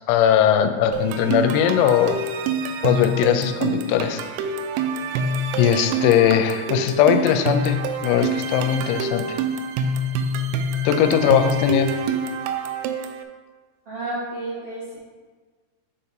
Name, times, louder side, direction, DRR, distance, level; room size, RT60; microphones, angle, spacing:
voice 1, 0.1-2.2 2.8-4.2 5.6-9.4 10.8-11.9, left 9 dB, 90° left, 7 dB, 3.3 m, -19 dB
sound 1, 0.9-13.2, right 3 dB, 85° right, 3.1 m, -26 dB
voice 2, 13.8-15.0, right 2 dB, 70° right, -12 dB, 1.4 m, -31 dB
6.7 x 5.1 x 4.3 m, 1.4 s
omnidirectional pair, 5.9 m